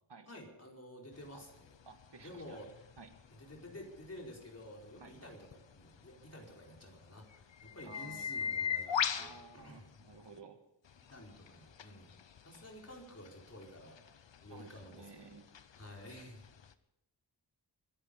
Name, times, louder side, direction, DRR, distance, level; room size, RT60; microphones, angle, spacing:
voice 1, 0.3-1.7 2.2-2.7 3.3-9.9 11.1-15.4 15.7-16.5, left 1 dB, 35° left, 0 dB, 4.5 m, -51 dB
sound 1, 1.1-10.4 10.8-16.7, left 8 dB, 85° left, 0.9 m, -42 dB
voice 2, 1.9-2.6 3.0-3.1 5.0-5.2 7.8-8.3 9.1-10.6 14.5-15.5, right 4 dB, 70° right, 6 dB, 1.8 m, -54 dB
25.0 x 11.0 x 5.3 m, 0.83 s
wide cardioid pair, 85°, 43 cm